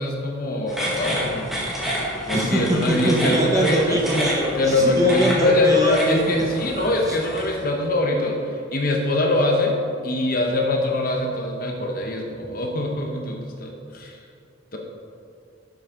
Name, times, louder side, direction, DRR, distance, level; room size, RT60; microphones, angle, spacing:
voice 1, 0.0-1.5 2.3-4.0 4.6-14.2 14.7-14.8, left 2 dB, 45° left, 1 dB, 1.0 m, -23 dB
sound 1, 0.7-7.6, equal, ahead, 1.7 m, -30 dB
voice 2, 2.3-6.4 7.1-7.2, equal, 15° right, -2 dB, 1.3 m, -23 dB
11.5 x 7.3 x 3.7 m, 2.4 s
head